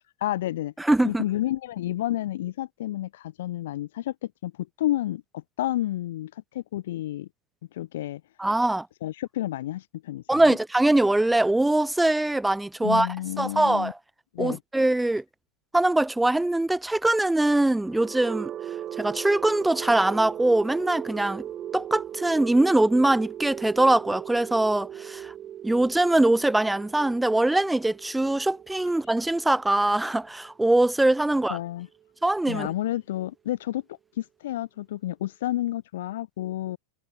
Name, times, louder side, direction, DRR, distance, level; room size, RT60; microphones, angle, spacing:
voice 1, 0.2-0.7 1.0-4.5 4.8-7.3 7.7-8.2 9.0-10.6 12.8-13.9 14.3-14.6 31.5-31.9 32.5-33.8 34.2-36.8, left 14 dB, 55° left, 0.4 m, -30 dB
voice 2, 0.8-1.2 8.4-8.9 10.3-13.1 13.4-14.0 14.4-15.2 15.7-18.5 19.0-21.4 21.7-25.3 25.6-31.6 32.2-32.7, right 2 dB, 5° right, 0.8 m, -22 dB
sound 1, 17.7-31.6, right 10 dB, 30° right, 7.1 m, -38 dB
figure-of-eight pair, 90°, 0 cm